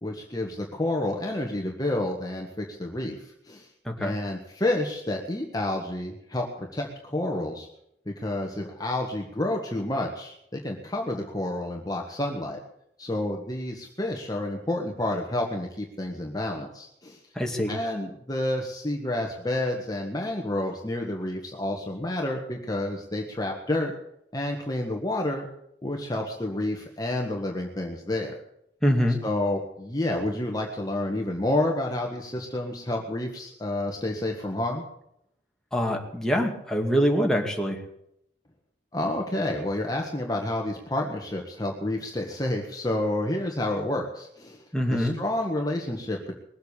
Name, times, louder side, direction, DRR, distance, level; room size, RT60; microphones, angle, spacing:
voice 1, 0.0-3.7 4.0-7.7 8.1-12.6 13.0-17.2 17.7-23.9 24.3-25.5 25.8-28.4 29.2-34.8 38.9-44.6 44.9-46.4, left 1 dB, 20° left, 1 dB, 1.6 m, -29 dB
voice 2, 3.8-4.2 17.3-17.7 28.8-29.2 35.7-37.8 44.7-45.2, equal, 5° left, 0 dB, 2.3 m, -24 dB
21.0 x 8.1 x 8.4 m, 0.76 s
head